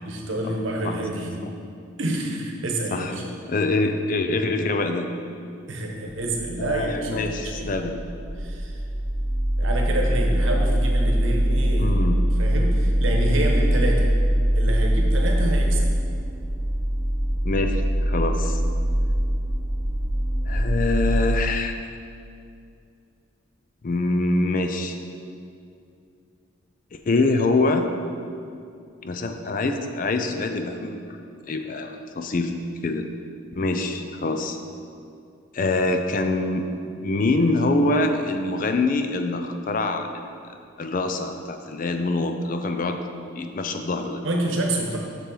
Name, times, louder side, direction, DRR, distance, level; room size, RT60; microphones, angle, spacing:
voice 1, 0.0-1.4 2.0-3.2 5.7-7.7 8.4-8.8 9.6-12.0 12.4-14.1 14.5-15.9 44.2-45.0, right 1 dB, 75° right, 1 dB, 1.0 m, -28 dB
voice 2, 3.5-5.1 6.6-8.0 11.8-12.2 17.4-18.6 20.5-21.7 23.8-25.0 26.9-27.9 29.0-31.1 31.5-32.6 32.8-33.1 33.5-34.6 35.5-36.6 37.0-40.1 40.8-43.0 43.4-44.2, left 2 dB, 45° left, 6 dB, 0.4 m, -24 dB
sound 1, 6.2-21.4, equal, 35° right, 0.7 m, -23 dB
6.9 x 6.0 x 3.9 m, 2.5 s
head